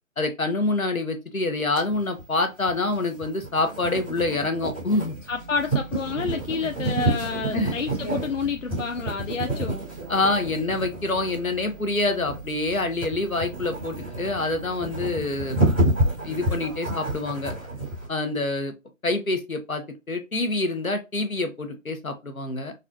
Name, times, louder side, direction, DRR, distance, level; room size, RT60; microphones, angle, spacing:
voice 1, 0.2-5.2 6.6-6.7 7.5-7.8 10.1-15.6 16.2-17.5 18.1-18.7 19.0-22.7, left 2 dB, 85° left, 1.1 m, -26 dB
sound 1, 1.8-18.1, right 1 dB, 10° right, 1.0 m, -29 dB
voice 2, 5.3-9.8, left 5 dB, 65° left, 0.5 m, -29 dB
sound 2, 5.3-16.7, right 4 dB, 25° left, 0.8 m, -44 dB
4.0 x 2.3 x 2.8 m
figure-of-eight pair, 160°, 40 cm